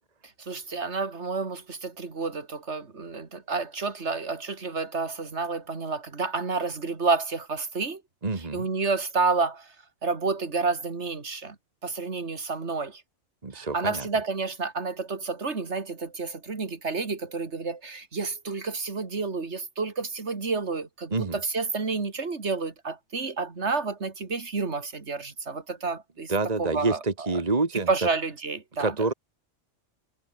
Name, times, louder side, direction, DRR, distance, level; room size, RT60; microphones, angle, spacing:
voice 1, 0.4-8.0 8.5-9.7 10.0-11.6 11.8-13.0 13.5-26.3 26.6-27.0 27.3-27.4 27.7-28.9, right 4 dB, 70° right, 2.7 m, -30 dB
voice 2, 8.2-8.7 13.4-14.1 21.1-21.4 26.3-27.9 28.8-29.1, right 3 dB, 35° right, 1.9 m, -27 dB
omnidirectional pair, 1.2 m